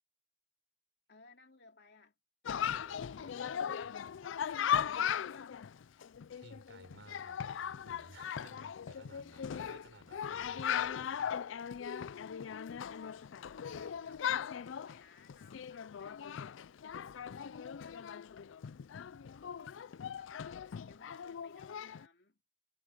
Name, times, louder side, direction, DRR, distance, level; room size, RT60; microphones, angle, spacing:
voice 1, 1.1-2.1 2.6-4.6 5.0-5.6 8.4-8.7 12.5-13.4 13.6-16.2 17.1-18.0 20.2-22.4, left 3 dB, 60° left, 2.8 m, -61 dB
Chatter, 2.4-22.0, left 8 dB, 80° left, 0.4 m, -38 dB
voice 2, 2.5-3.3 5.1-5.2 6.3-11.4 11.9-12.0 20.4-20.5, right 2 dB, 75° right, 4.7 m, -57 dB
head